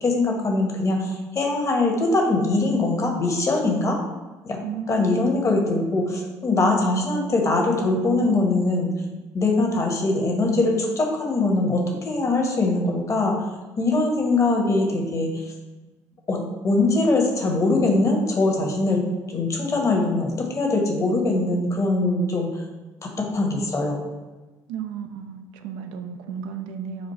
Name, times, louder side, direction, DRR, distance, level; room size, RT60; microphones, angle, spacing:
voice 1, 0.0-4.0 4.4-4.6 4.9-8.9 9.3-13.3 13.8-15.5 16.3-16.4 16.6-22.5 23.0-24.0, left 2 dB, 35° left, 1 dB, 1.0 m, -22 dB
voice 2, 4.6-5.6 24.7-27.1, right 6 dB, 70° right, 7 dB, 0.4 m, -33 dB
4.2 x 2.4 x 4.3 m, 1.2 s
hypercardioid pair, 55°, 9 cm